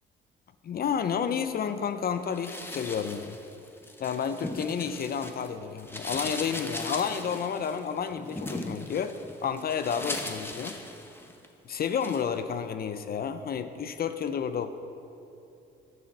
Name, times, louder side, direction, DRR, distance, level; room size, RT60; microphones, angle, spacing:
voice 1, 0.6-3.4 4.0-9.2 9.4-10.8 11.6-14.7, left 7 dB, 50° left, 10 dB, 0.6 m, -31 dB
sound 1, 2.3-5.5 5.8-11.5 11.8-12.3, left 1 dB, 10° left, 0.9 m, -39 dB
11.0 x 7.0 x 5.9 m, 2.8 s
cardioid pair, 90°, 20 cm